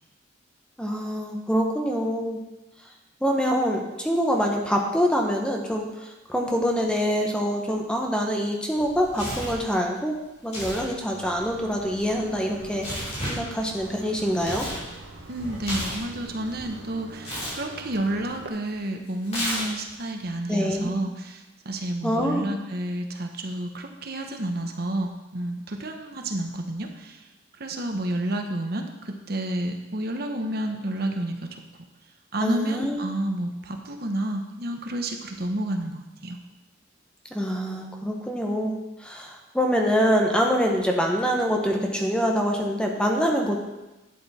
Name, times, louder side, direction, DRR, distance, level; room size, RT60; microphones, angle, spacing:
voice 1, 0.8-2.4 3.2-10.2 10.4-14.7 20.5-20.9 22.0-22.5 32.4-33.0 37.3-43.6, equal, 5° left, 1 dB, 1.1 m, -25 dB
Tearing, 8.8-9.6 10.4-10.9 11.1-14.8 15.2-16.7 17.2-17.6 19.2-19.9, equal, 35° left, 4.3 m, -33 dB
sound 1, 11.1-18.5, right 3 dB, 85° right, 1.3 m, -45 dB
voice 2, 15.3-27.2 27.6-31.8 32.3-36.4, right 1 dB, 55° right, 4 dB, 1.1 m, -30 dB
11.5 x 8.5 x 4.3 m, 1.0 s
head